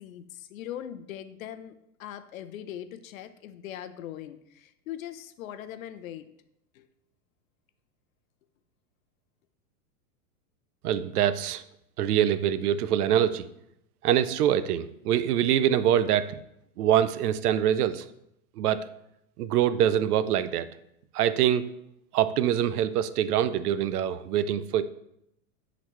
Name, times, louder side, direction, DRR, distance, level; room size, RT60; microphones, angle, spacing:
voice 1, 0.0-6.3 6.7-6.9, left 11 dB, 65° left, 12 dB, 0.6 m, -41 dB
voice 2, 10.8-11.6 12.0-13.4 14.0-16.4 16.8-18.1 18.6-18.9 19.4-20.7 21.1-21.7 22.1-24.8, right 10 dB, 85° right, 14 dB, 0.6 m, -24 dB
10.5 x 4.0 x 3.1 m, 0.79 s
supercardioid pair, 170°, 44 cm